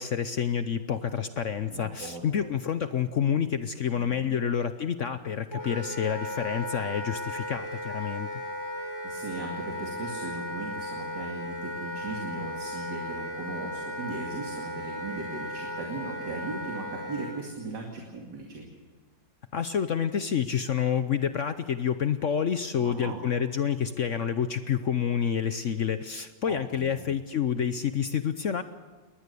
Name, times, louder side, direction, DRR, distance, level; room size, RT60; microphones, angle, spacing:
voice 1, 0.0-8.4 19.5-28.6, left 8 dB, 65° left, 11 dB, 0.8 m, -28 dB
voice 2, 1.7-2.5 3.9-4.5 9.0-18.7 22.8-23.2 26.5-27.0, right 3 dB, 60° right, 0 dB, 2.9 m, -38 dB
Wind instrument woodwind instrument, 5.5-17.3, left 1 dB, 35° left, 8.6 m, -36 dB
22.0 x 19.0 x 6.8 m, 1.3 s
omnidirectional pair, 2.1 m